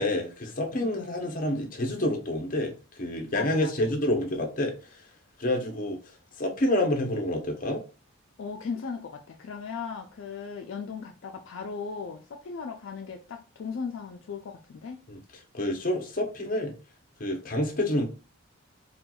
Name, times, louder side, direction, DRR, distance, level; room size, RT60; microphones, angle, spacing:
voice 1, 0.0-2.7 3.0-5.0 5.4-6.0 6.4-7.8 15.1-15.2 15.5-16.7 17.2-18.1, left 1 dB, 40° left, 0.7 m, -28 dB
voice 2, 0.8-1.2 3.3-3.9 8.4-15.0, left 5 dB, 60° left, 0.3 m, -37 dB
4.3 x 2.3 x 2.2 m
head